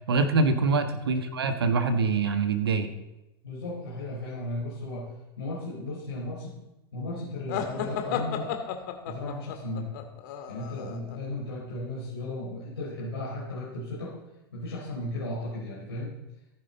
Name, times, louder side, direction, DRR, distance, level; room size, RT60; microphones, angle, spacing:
voice 1, 0.1-2.9, right 4 dB, 70° right, 8 dB, 1.4 m, -24 dB
voice 2, 3.4-6.6 6.9-8.5 9.0-9.9 10.5-14.2 14.5-16.1, left 2 dB, 80° left, -6 dB, 4.5 m, -35 dB
sound 1, 7.5-11.2, left 8 dB, 55° left, 2.1 m, -33 dB
18.5 x 10.5 x 4.1 m, 0.96 s
figure-of-eight pair, 90°, 13 cm